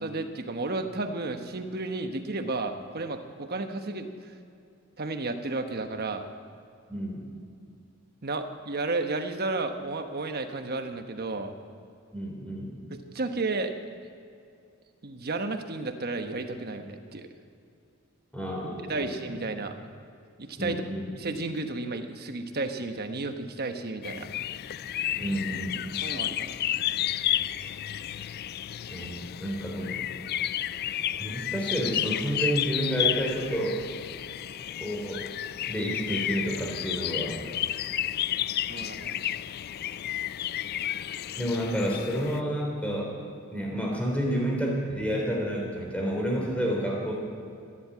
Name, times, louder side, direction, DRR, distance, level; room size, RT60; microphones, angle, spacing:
voice 1, 0.0-4.1 5.0-6.2 8.2-11.5 12.9-13.7 15.0-17.3 18.9-19.7 20.4-20.8 21.2-24.3 26.0-26.8 38.7-39.2, right 3 dB, 50° right, 6 dB, 1.1 m, -32 dB
voice 2, 6.9-7.3 12.1-12.8 18.3-19.4 20.6-21.1 25.2-25.8 28.9-30.0 31.2-33.8 34.8-35.3 35.7-37.4 41.4-43.2 43.5-47.1, equal, 5° left, -2 dB, 3.5 m, -30 dB
sound 1, 24.0-42.4, left 11 dB, 50° left, 0.3 m, -32 dB
14.5 x 11.5 x 8.6 m, 2.6 s
head